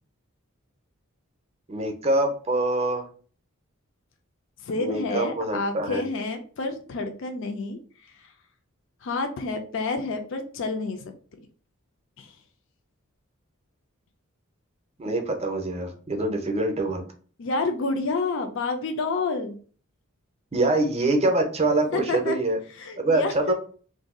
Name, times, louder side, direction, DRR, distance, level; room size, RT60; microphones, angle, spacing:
voice 1, 1.7-3.1 4.8-6.1 15.0-17.0 20.5-22.6 23.0-23.5, right 2 dB, 30° right, 4 dB, 0.6 m, -25 dB
voice 2, 4.6-8.3 9.0-11.0 12.2-12.3 17.4-19.6 21.9-22.4 22.8-23.5, left 3 dB, 60° left, 5 dB, 0.4 m, -29 dB
2.6 x 2.3 x 3.6 m, 0.42 s
head